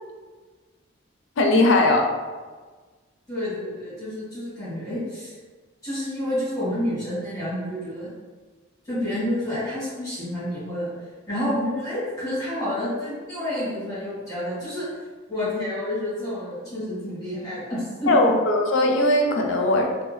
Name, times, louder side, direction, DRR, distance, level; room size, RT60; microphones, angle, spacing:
voice 1, 1.4-2.1 18.1-20.0, left 2 dB, 65° left, 3 dB, 0.4 m, -19 dB
voice 2, 3.3-5.3 5.8-8.1 8.9-10.9 11.3-14.9 15.3-18.3, left 1 dB, 15° left, -13 dB, 1.2 m, -29 dB
2.6 x 2.0 x 3.1 m, 1.4 s
head